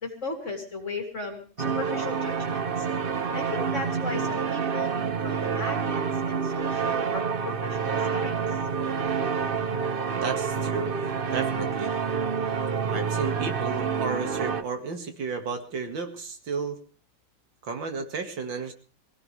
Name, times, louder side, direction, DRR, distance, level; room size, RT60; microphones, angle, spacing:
voice 1, 0.0-2.9 3.3-8.4, left 3 dB, 40° left, 3 dB, 3.2 m, -37 dB
sound 1, 1.6-14.6, right 6 dB, 40° right, 0.9 m, -28 dB
voice 2, 10.2-10.9 11.3-11.9 12.9-16.8 17.6-18.7, right 4 dB, 90° right, 5 dB, 2.8 m, -32 dB
23.5 x 16.5 x 3.4 m, 0.38 s
omnidirectional pair, 2.0 m